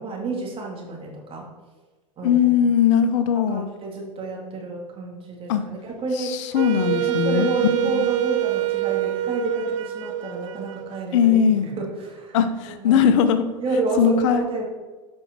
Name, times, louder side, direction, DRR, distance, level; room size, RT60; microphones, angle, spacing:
voice 1, 0.0-1.5 2.2-2.6 3.3-6.4 6.9-11.3 11.6-12.4 12.6-13.1 13.6-14.7, right 2 dB, 35° right, -1 dB, 2.6 m, -29 dB
voice 2, 2.2-3.7 5.5-5.6 6.2-7.5 7.8-8.1 11.1-11.6 12.3-13.5 14.0-14.4, left 8 dB, 70° left, 10 dB, 0.8 m, -19 dB
Wind instrument woodwind instrument, 6.5-11.5, right 14 dB, 75° right, 0.5 m, -26 dB
8.2 x 5.3 x 5.3 m, 1.3 s
hypercardioid pair, 95°, 16 cm